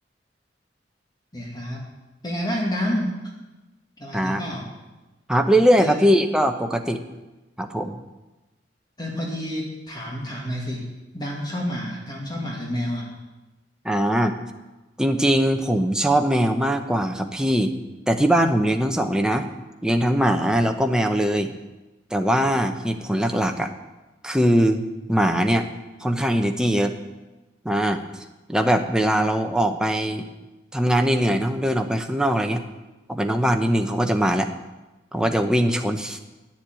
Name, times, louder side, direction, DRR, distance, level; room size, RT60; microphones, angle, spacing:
voice 1, 1.3-1.9 2.2-3.2 4.0-4.7 5.8-6.0 9.0-10.9 11.1-13.1, equal, 25° left, -2 dB, 2.0 m, -29 dB
voice 2, 5.3-7.0 7.6-8.0 13.8-14.4 15.0-17.7 18.1-19.5 19.8-21.5 22.1-23.7 24.2-25.7 26.0-27.0 27.6-28.0 28.5-30.2 30.7-32.6 33.1-34.5 35.1-36.2, equal, 5° right, 5 dB, 0.8 m, -21 dB
9.9 x 7.4 x 9.0 m, 1.1 s
head